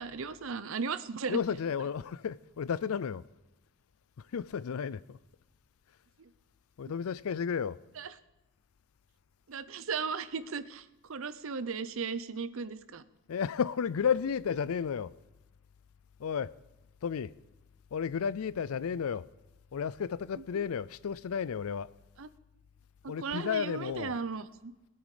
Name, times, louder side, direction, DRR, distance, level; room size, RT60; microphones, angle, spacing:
voice 1, 0.0-1.4 6.2-6.3 8.0-8.1 9.5-13.0 20.4-20.6 22.2-22.3 23.0-24.7, right 5 dB, 60° right, 0.6 m, -36 dB
voice 2, 1.3-3.2 4.3-5.2 6.8-7.8 13.3-15.1 16.2-16.5 17.0-17.3 17.9-19.3 19.7-21.9 23.1-24.2, left 7 dB, 70° left, 0.4 m, -32 dB
20.5 x 7.9 x 4.9 m
head